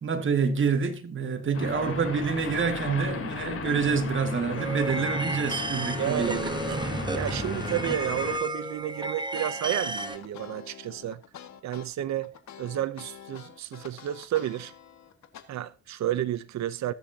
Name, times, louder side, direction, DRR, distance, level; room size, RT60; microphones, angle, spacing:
voice 1, 0.0-6.5, right 5 dB, 40° right, 2.0 m, -27 dB
sound 1, 1.5-8.4, left 5 dB, 50° left, 3.3 m, -36 dB
sound 2, 4.6-10.2, right 2 dB, 15° right, 1.1 m, -32 dB
voice 2, 6.0-11.2 11.6-14.7 15.5-16.9, right 12 dB, 65° right, 0.8 m, -31 dB
sound 3, 9.3-15.4, left 9 dB, 65° left, 1.9 m, -47 dB
21.0 x 7.1 x 2.8 m
cardioid pair, 90°, 30 cm